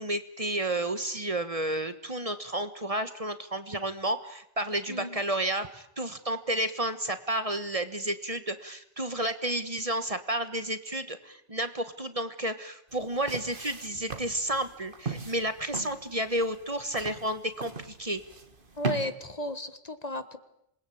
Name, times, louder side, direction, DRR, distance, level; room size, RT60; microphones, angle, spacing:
voice 1, 0.0-18.2, right 1 dB, 35° right, 10 dB, 1.5 m, -31 dB
voice 2, 4.9-5.2 18.8-20.4, left 1 dB, 40° left, 11 dB, 1.6 m, -34 dB
sound 1, 12.9-19.1, right 4 dB, 55° right, 2.1 m, -38 dB
27.0 x 21.0 x 8.7 m, 0.78 s
omnidirectional pair, 1.1 m